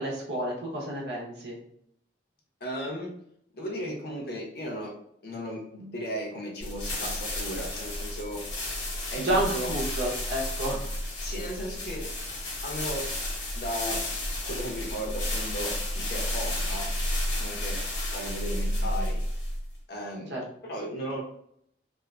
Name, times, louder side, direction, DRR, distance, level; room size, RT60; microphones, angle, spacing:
voice 1, 0.0-1.6 9.2-10.9 20.3-20.4, right 1 dB, 70° right, -3 dB, 0.7 m, -30 dB
voice 2, 2.6-3.1 3.5-5.0 5.2-8.4 9.1-9.7 11.2-12.1 12.6-13.1 13.5-14.1 14.4-16.9 17.4-17.8 18.1-19.2 19.9-20.3 20.6-21.2, equal, 55° left, -2 dB, 0.7 m, -35 dB
sound 1, 6.6-19.7, left 1 dB, 85° left, 0.9 m, -32 dB
2.5 x 2.5 x 2.2 m, 0.71 s
head